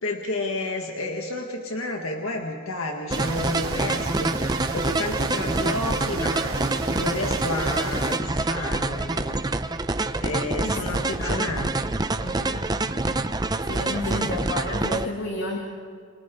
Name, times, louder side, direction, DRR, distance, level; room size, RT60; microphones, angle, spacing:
voice 1, 0.0-4.3 4.7-6.5 6.9-9.4 10.2-11.7 12.4-12.7 13.8-14.4, left 2 dB, 85° left, 2 dB, 1.8 m, -31 dB
sound 1, 3.1-15.1, right 2 dB, 20° right, 0.7 m, -26 dB
sound 2, 3.1-8.2, right 3 dB, 90° right, 3.8 m, -34 dB
voice 2, 10.6-10.9 11.2-11.7 12.2-12.6 13.7-15.6, left 1 dB, 60° left, -1 dB, 2.6 m, -31 dB
30.0 x 25.0 x 3.8 m, 2.2 s
head